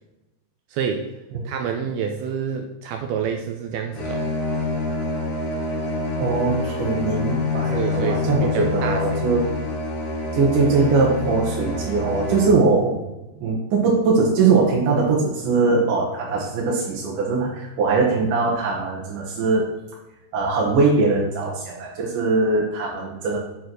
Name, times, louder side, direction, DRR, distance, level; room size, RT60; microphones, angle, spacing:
voice 1, 0.7-1.1 1.5-4.2 7.7-9.3 13.4-13.5, right 7 dB, 85° right, 4 dB, 2.2 m, -28 dB
sound 1, 3.9-12.5, left 3 dB, 55° left, 2.1 m, -26 dB
voice 2, 6.2-9.4 10.3-13.0 13.4-19.7 20.3-23.4, right 4 dB, 65° right, -3 dB, 2.2 m, -21 dB
9.2 x 4.5 x 6.2 m, 1.0 s
omnidirectional pair, 5.2 m